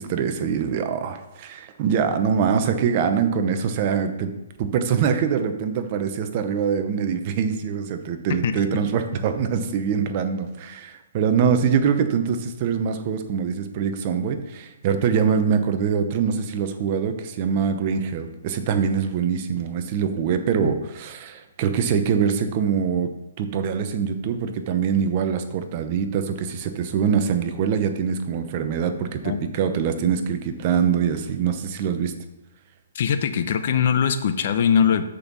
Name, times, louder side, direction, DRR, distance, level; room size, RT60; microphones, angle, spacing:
voice 1, 0.0-4.3 4.6-32.1, right 7 dB, 35° right, 8 dB, 0.8 m, -24 dB
voice 2, 32.9-35.0, left 7 dB, 50° left, 9 dB, 0.7 m, -21 dB
6.6 x 5.4 x 6.1 m, 0.98 s
hypercardioid pair, 155°, 0 cm